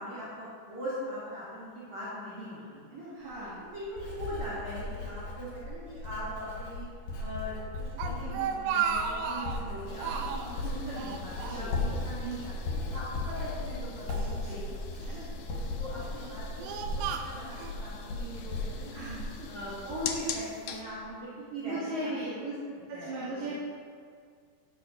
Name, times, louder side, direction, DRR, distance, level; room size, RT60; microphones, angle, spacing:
voice 1, 0.0-3.1 3.7-6.9 7.2-7.5 7.8-16.4 16.7-19.1 19.5-23.6, equal, 40° right, -10 dB, 3.7 m, -40 dB
voice 2, 3.1-3.7 11.5-11.7 14.4-14.6 18.9-19.5 21.6-22.3 23.0-23.6, right 1 dB, 60° right, -11 dB, 4.4 m, -37 dB
Writing, 3.2-20.3 20.6-21.0, left 2 dB, 55° left, 4.5 m, -37 dB
Speech, 7.7-9.7 10.0-10.6 10.9-12.1 12.3-12.5 13.3-14.3 15.0-15.4 16.1-17.7, right 7 dB, 85° right, 3.3 m, -34 dB
sound 1, 9.9-20.8, left 7 dB, 80° left, 2.5 m, -44 dB
16.0 x 13.0 x 2.7 m, 2.1 s
omnidirectional pair, 5.6 m